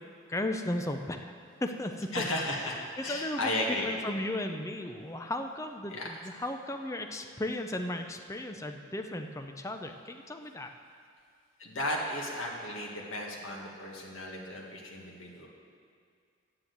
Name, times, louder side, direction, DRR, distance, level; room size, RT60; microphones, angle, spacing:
voice 1, 0.3-1.2 1.6-2.2 2.6-10.7, left 1 dB, 15° left, 5 dB, 0.6 m, -35 dB
voice 2, 2.1-3.9 5.9-6.1 11.6-15.5, left 1 dB, 80° left, -2 dB, 1.9 m, -34 dB
9.9 x 7.7 x 7.9 m, 2.2 s
head